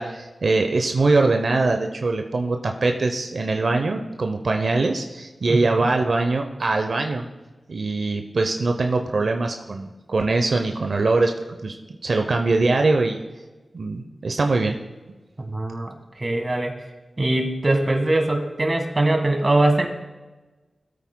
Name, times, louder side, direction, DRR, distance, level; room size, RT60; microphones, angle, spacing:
voice 1, 0.0-7.2 7.7-11.8 12.0-13.2 13.7-14.8, right 3 dB, 70° right, 4 dB, 0.7 m, -22 dB
voice 2, 15.5-16.7 17.2-19.9, right 2 dB, 40° right, 4 dB, 1.5 m, -22 dB
17.5 x 8.5 x 2.2 m, 1.2 s
cardioid pair, 50°, 0 cm